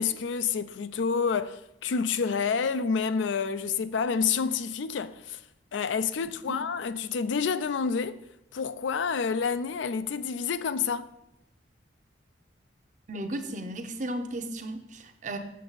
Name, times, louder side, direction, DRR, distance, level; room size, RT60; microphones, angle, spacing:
voice 1, 0.0-5.4 5.7-8.2 8.5-11.1, left 6 dB, 80° left, 0.4 m, -28 dB
voice 2, 13.1-15.4, right 1 dB, 40° right, 0.6 m, -35 dB
7.4 x 6.7 x 4.0 m
head